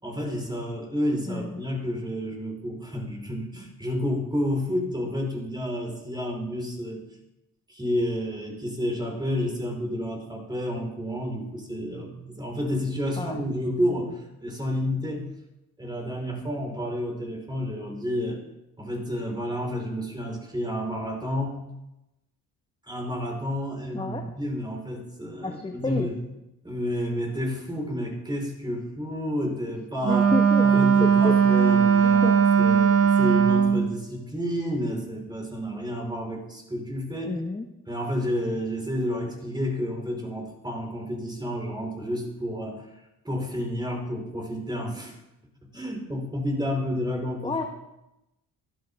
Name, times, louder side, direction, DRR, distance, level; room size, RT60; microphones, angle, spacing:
voice 1, 0.0-7.0 7.7-15.2 15.8-18.4 18.8-21.6 22.9-26.2 26.6-30.3 30.6-37.3 37.9-42.9 43.2-45.1 45.7-47.7, equal, 10° right, 1 dB, 4.7 m, -30 dB
voice 2, 1.3-1.7 13.2-13.4 23.9-24.2 25.4-26.1 30.1-31.4 32.0-32.4 37.2-37.7 47.4-47.6, left 3 dB, 15° left, 4 dB, 1.1 m, -30 dB
Wind instrument woodwind instrument, 30.0-33.9, right 6 dB, 35° right, 1.4 m, -19 dB
16.0 x 12.0 x 3.7 m, 0.93 s
supercardioid pair, 70°, 38 cm